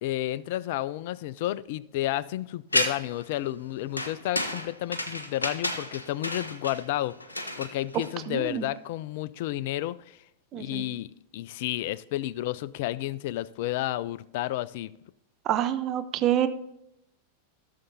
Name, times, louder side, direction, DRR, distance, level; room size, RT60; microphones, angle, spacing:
voice 1, 0.0-7.1 7.6-10.2 10.6-11.1 11.3-14.9, left 14 dB, 50° left, 20 dB, 0.3 m, -31 dB
sound 1, 2.7-3.2 4.0-8.5, left 1 dB, 80° left, 0.7 m, -31 dB
voice 2, 8.3-8.7 10.5-10.8 15.5-16.5, right 11 dB, 35° right, 9 dB, 0.6 m, -27 dB
15.5 x 6.7 x 2.8 m, 0.79 s
figure-of-eight pair, 90°, 0 cm